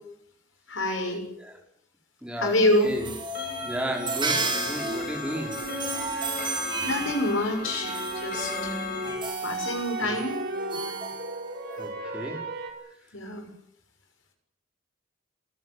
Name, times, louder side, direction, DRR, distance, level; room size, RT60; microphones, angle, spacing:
voice 1, 0.7-1.2 2.4-2.9 6.8-8.8 9.4-10.4 13.1-13.5, left 1 dB, 75° left, 5 dB, 6.6 m, -26 dB
voice 2, 2.2-3.1 3.6-5.6 10.0-10.2 11.8-12.4, equal, 5° right, 1 dB, 4.9 m, -34 dB
sound 1, 2.4-11.9, right 3 dB, 25° right, 6.6 m, -34 dB
Clock, 3.3-9.2, left 3 dB, 50° left, 4.0 m, -36 dB
sound 2, 5.3-7.1 7.8-12.7, right 2 dB, 50° right, 5.4 m, -36 dB
26.5 x 15.0 x 9.9 m, 0.71 s
head